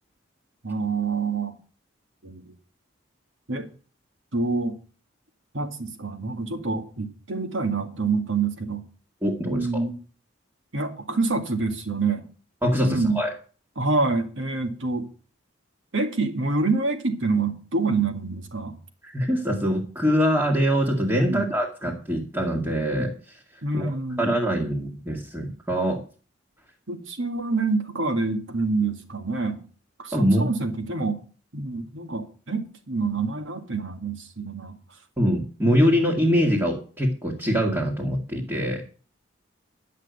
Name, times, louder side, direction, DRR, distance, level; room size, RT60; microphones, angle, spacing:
voice 1, 0.6-1.5 2.2-2.5 3.5-3.7 4.3-4.8 5.5-8.8 9.5-10.0 10.7-12.3 12.8-13.2 13.8-15.1 15.9-18.7 21.2-21.5 23.6-24.4 26.9-29.6 30.0-31.2 31.5-34.8 35.7-36.1, right 3 dB, 75° right, 2.0 m, -27 dB
voice 2, 9.2-9.8 12.6-13.3 19.0-23.4 23.7-26.0 30.1-30.5 35.2-38.8, equal, 10° right, 1.8 m, -24 dB
11.0 x 6.6 x 8.1 m
head